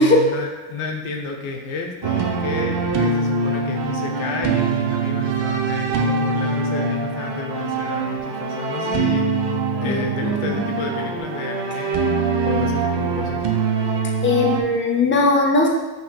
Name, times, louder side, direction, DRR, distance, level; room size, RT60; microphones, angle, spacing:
voice 1, 0.0-9.3 9.8-13.4, left 4 dB, 80° left, 2 dB, 0.7 m, -31 dB
sound 1, 2.0-14.6, right 4 dB, 55° right, 0.7 m, -23 dB
voice 2, 9.8-10.7 14.2-15.7, left 2 dB, 25° left, -1 dB, 0.9 m, -19 dB
5.6 x 3.1 x 2.2 m, 1.2 s
supercardioid pair, 75°, 50 cm